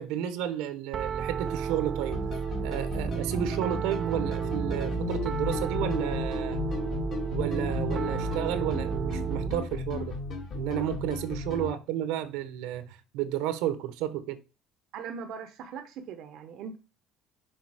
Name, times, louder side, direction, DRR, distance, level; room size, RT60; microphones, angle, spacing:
voice 1, 0.0-2.2 2.6-6.6 7.3-10.2 10.5-14.4, right 11 dB, 85° right, 1.0 m, -32 dB
Piano, 0.9-9.6, right 7 dB, 40° right, 0.3 m, -32 dB
sound 1, 2.1-11.7, left 5 dB, 50° left, 1.9 m, -35 dB
voice 2, 14.9-16.8, right 6 dB, 65° right, 0.8 m, -40 dB
6.4 x 3.9 x 4.8 m
cardioid pair, 120°, 0 cm